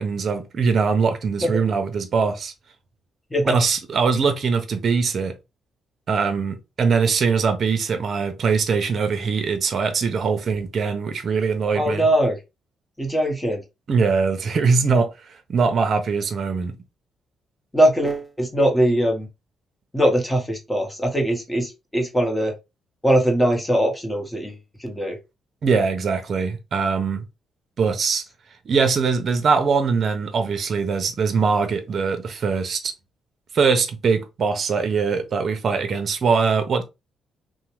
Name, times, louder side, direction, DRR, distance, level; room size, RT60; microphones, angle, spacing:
voice 1, 0.0-2.5 3.4-5.3 6.1-12.1 13.9-15.1 15.5-16.7 25.6-27.2 27.8-28.2 28.7-32.9 33.5-36.8, right 5 dB, 50° right, 0.6 m, -22 dB
voice 2, 11.7-12.4 13.0-13.6 17.7-19.3 19.9-22.5 23.0-25.2, right 1 dB, 10° left, 0.9 m, -21 dB
2.6 x 2.0 x 3.0 m
cardioid pair, 90°, 0 cm